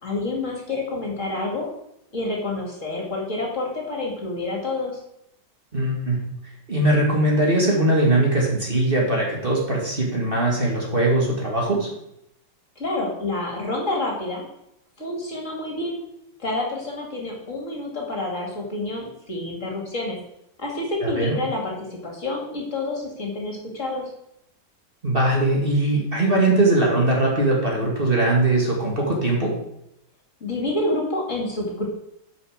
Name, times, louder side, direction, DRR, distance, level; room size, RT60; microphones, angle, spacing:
voice 1, 0.0-1.7 2.1-5.0 12.8-14.4 15.0-16.0 16.4-20.2 20.6-24.1 30.4-31.9, left 2 dB, 45° left, 0 dB, 2.7 m, -28 dB
voice 2, 5.7-6.2 6.7-11.9 21.0-21.4 25.0-29.5, right 2 dB, 30° right, -2 dB, 2.4 m, -20 dB
9.6 x 6.4 x 6.6 m, 0.81 s
omnidirectional pair, 2.0 m